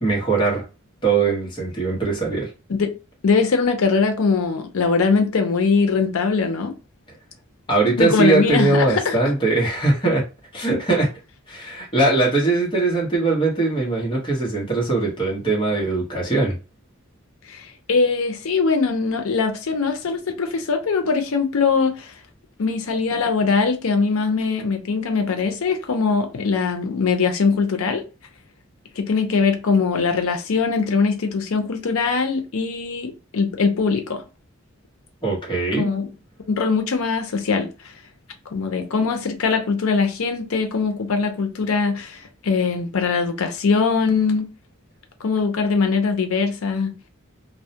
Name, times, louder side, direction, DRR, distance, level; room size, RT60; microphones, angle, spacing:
voice 1, 0.0-0.6 1.0-2.5 7.7-10.2 10.5-11.1 11.5-16.6 35.2-35.9, right 3 dB, 25° left, 0.9 m, -21 dB
voice 2, 3.2-6.7 8.0-9.2 17.5-17.6 17.9-22.1 22.6-28.0 29.0-34.2 35.8-36.1 36.5-37.7 38.5-44.5 45.2-46.9, left 4 dB, 85° left, 0.6 m, -21 dB
2.3 x 2.1 x 2.7 m
head